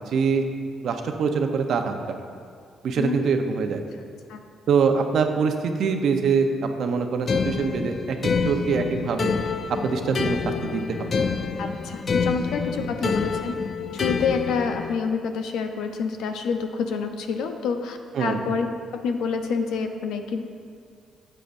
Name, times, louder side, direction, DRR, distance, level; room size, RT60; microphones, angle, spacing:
voice 1, 0.1-0.4 0.8-1.9 2.8-3.8 4.7-6.5 6.8-8.2 8.5-9.3 9.8-11.1 12.8-13.1 18.1-18.4, right 5 dB, 65° right, 5 dB, 0.7 m, -24 dB
sound 1, 7.3-15.0, left 5 dB, 45° left, 0.4 m, -27 dB
voice 2, 11.6-13.5 13.9-18.7 18.9-20.4, left 5 dB, 85° left, 6 dB, 0.7 m, -27 dB
12.5 x 7.6 x 2.6 m, 2.2 s
cardioid pair, 90°, 0 cm